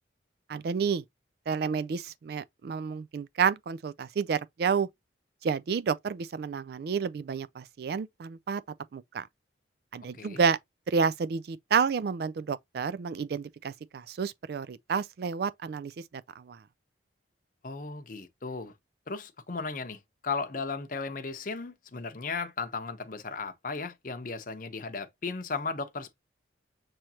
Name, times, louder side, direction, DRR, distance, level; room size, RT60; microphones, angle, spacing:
voice 1, 0.5-1.0 1.5-4.9 5.4-8.6 8.9-9.3 9.9-10.6 10.9-16.0 16.4-16.6, right 6 dB, 55° right, 0.3 m, -30 dB
voice 2, 17.6-18.7 19.1-26.1, left 4 dB, 45° left, 0.7 m, -36 dB
6.0 x 3.1 x 2.8 m
head